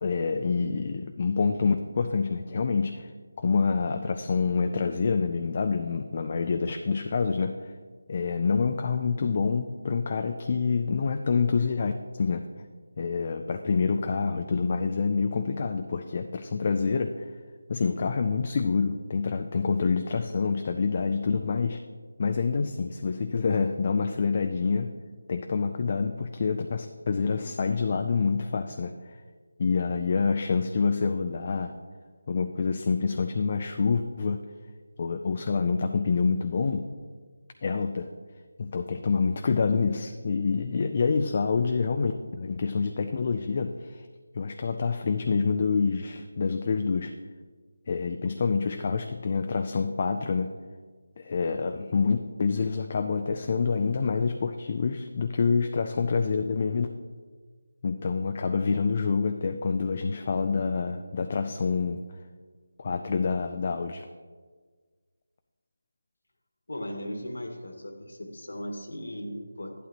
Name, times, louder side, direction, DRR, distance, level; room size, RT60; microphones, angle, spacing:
voice 1, 0.0-3.1 3.4-7.7 8.1-11.9 12.2-12.5 13.0-17.3 17.7-21.8 22.2-24.9 25.3-29.2 29.6-31.7 32.3-34.4 35.0-36.9 37.6-38.1 38.6-44.1 44.3-47.1 47.9-50.5 51.2-56.9 57.8-62.0 62.8-64.1, left 5 dB, 30° left, 6 dB, 0.4 m, -27 dB
voice 2, 66.7-69.8, equal, 80° left, 3 dB, 1.8 m, -37 dB
11.5 x 11.0 x 3.0 m, 1.5 s
figure-of-eight pair, 175°, 0 cm